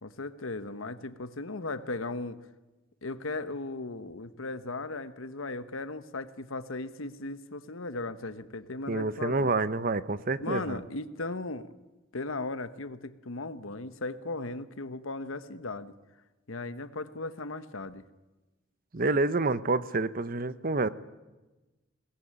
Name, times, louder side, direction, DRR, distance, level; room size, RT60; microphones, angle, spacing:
voice 1, 0.0-2.4 3.0-9.5 10.4-11.7 12.1-15.9 16.5-18.1, left 2 dB, 85° left, 12 dB, 1.1 m, -37 dB
voice 2, 8.9-10.8 18.9-20.9, right 3 dB, 45° right, 14 dB, 0.8 m, -28 dB
22.0 x 18.5 x 8.8 m, 1.1 s
head